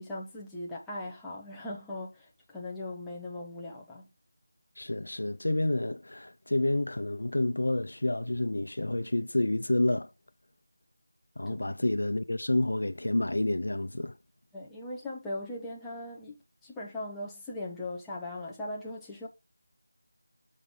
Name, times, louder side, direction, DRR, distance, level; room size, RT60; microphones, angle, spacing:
voice 1, 0.0-4.1 11.5-11.7 14.5-19.3, left 1 dB, 5° left, 0.8 m, -39 dB
voice 2, 4.8-10.1 11.4-14.2, left 1 dB, 70° left, 0.8 m, -29 dB
6.6 x 5.4 x 3.7 m
figure-of-eight pair, 170°, 0 cm